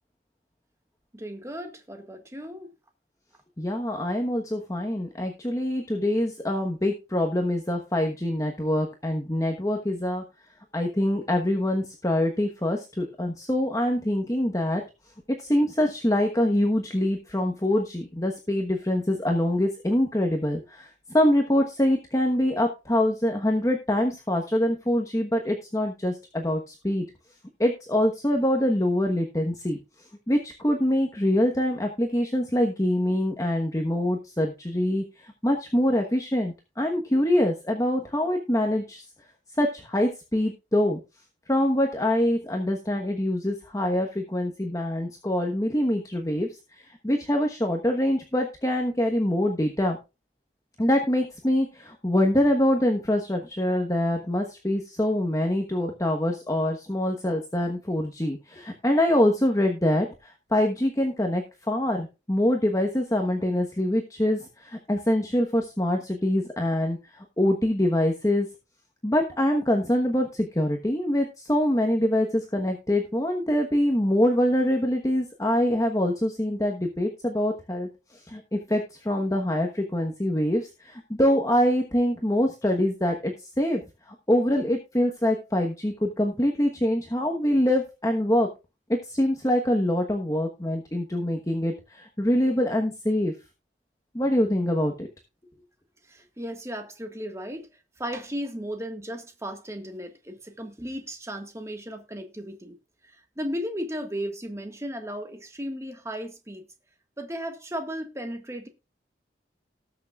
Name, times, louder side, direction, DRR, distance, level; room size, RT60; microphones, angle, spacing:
voice 1, 1.1-2.7 96.1-97.7 98.0-102.8 103.4-106.6 107.2-108.7, equal, 15° right, 1.6 m, -35 dB
voice 2, 3.6-10.2 10.7-14.8 15.3-27.1 27.6-29.8 30.3-39.0 39.6-41.0 41.5-46.5 46.8-50.0 50.8-68.5 69.0-83.8 84.1-88.5 88.9-93.3 94.1-95.1, left 1 dB, 15° left, 1.1 m, -25 dB
19.0 x 6.6 x 2.4 m
head